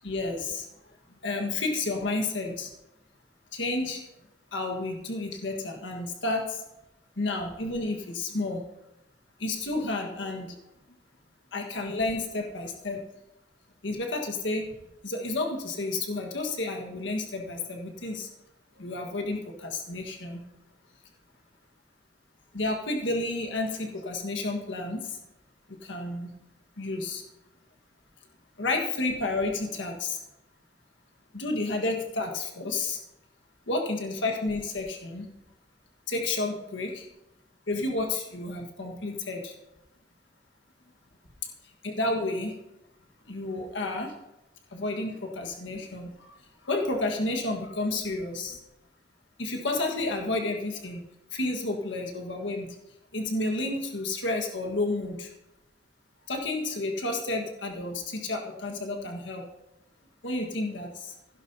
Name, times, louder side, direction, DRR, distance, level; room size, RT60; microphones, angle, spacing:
voice 1, 0.0-0.6 1.2-2.7 3.5-4.0 4.5-6.4 7.2-8.6 9.4-10.5 11.5-13.0 13.8-14.7 15.0-18.3 18.8-20.4 22.5-25.1 25.9-26.3 26.8-27.2 28.6-30.2 31.3-33.0 33.7-35.3 36.1-37.0 37.7-39.5 41.8-42.5 43.3-44.1 44.7-46.1 46.7-48.6 49.4-51.0 51.3-52.7 53.1-55.3 56.3-59.4 60.2-61.1, left 2 dB, 80° left, 3 dB, 1.7 m, -31 dB
16.0 x 11.0 x 2.9 m, 0.90 s
head